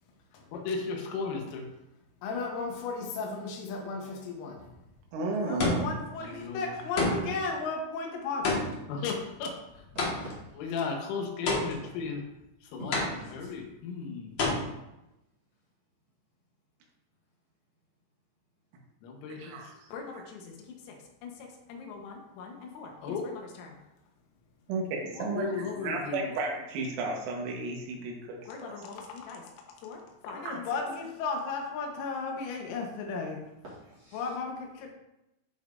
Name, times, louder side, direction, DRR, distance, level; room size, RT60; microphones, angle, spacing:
voice 1, 0.5-1.7 2.2-4.6 5.4-8.5 8.9-9.5 10.6-12.2 12.7-13.0 13.3-14.4 19.0-19.6 19.9-20.5 20.9-21.0 21.2-21.3 21.7-23.7 25.2-26.3 28.5-29.4 29.8-30.0 30.2-33.4 34.1-34.9, left 4 dB, 90° left, 1 dB, 4.0 m, -35 dB
sound 1, 4.6-5.0 5.6-6.1 7.0-7.5 8.4-10.5 11.5-12.0 12.9-13.5 14.4-14.5, left 2 dB, 65° left, 1.7 m, -30 dB
voice 2, 5.1-5.9 19.4-19.7 20.1-20.2 24.7-28.8 30.3-30.6, right 3 dB, 85° right, 0 dB, 4.1 m, -33 dB
voice 3, 9.9-10.9 11.8-11.9 12.8-13.5 14.2-14.3 33.6-34.4, right 1 dB, 50° right, -8 dB, 2.1 m, -47 dB
12.0 x 5.5 x 2.6 m, 0.92 s
omnidirectional pair, 6.0 m